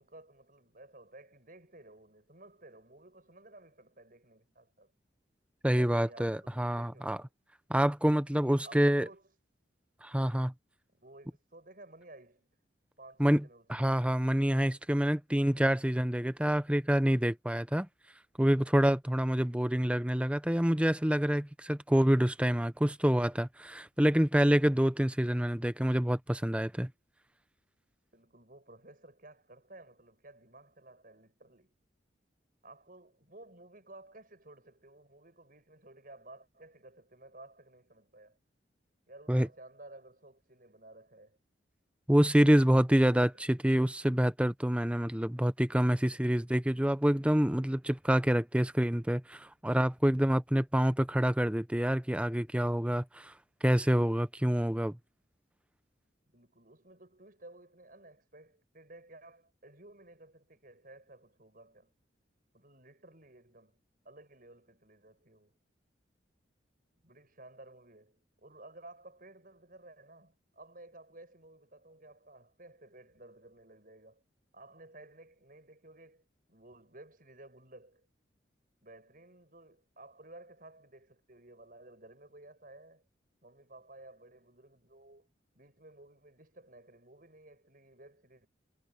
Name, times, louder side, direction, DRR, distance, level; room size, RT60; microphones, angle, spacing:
voice 1, 0.0-4.9 5.7-7.3 8.6-9.3 10.9-12.5 13.0-14.0 28.1-31.7 32.6-38.4 39.1-41.4 43.1-43.4 56.3-61.9 62.5-65.6 67.0-74.2 74.5-78.1 78.8-83.0 83.4-85.3 85.5-88.5, right 2 dB, 50° right, 7.9 m, -55 dB
voice 2, 5.6-7.2 7.7-9.1 10.0-10.5 13.2-13.4 13.7-17.9 18.4-26.9 39.3-39.5 42.1-53.3 53.6-55.0, equal, 5° right, 0.8 m, -27 dB
head